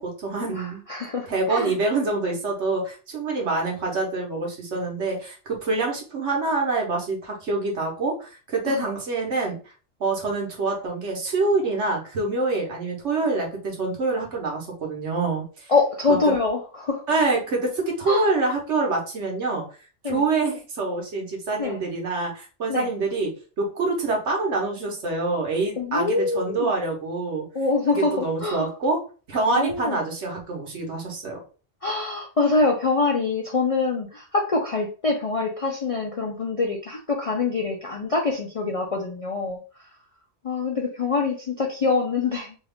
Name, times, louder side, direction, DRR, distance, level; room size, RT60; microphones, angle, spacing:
voice 1, 0.0-0.8 1.3-9.6 10.0-15.7 16.1-16.2 17.1-19.6 20.0-23.3 23.6-27.4 27.9-29.0 29.3-31.4, right 3 dB, 70° right, -1 dB, 1.4 m, -26 dB
voice 2, 0.5-1.8 8.6-8.8 15.7-17.0 18.1-18.3 20.0-20.3 21.6-21.8 22.7-22.9 25.8-26.7 27.5-28.7 29.5-30.0 31.8-39.6 40.4-42.6, left 3 dB, 50° left, -1 dB, 0.4 m, -25 dB
3.1 x 2.4 x 3.5 m, 0.36 s
omnidirectional pair, 1.2 m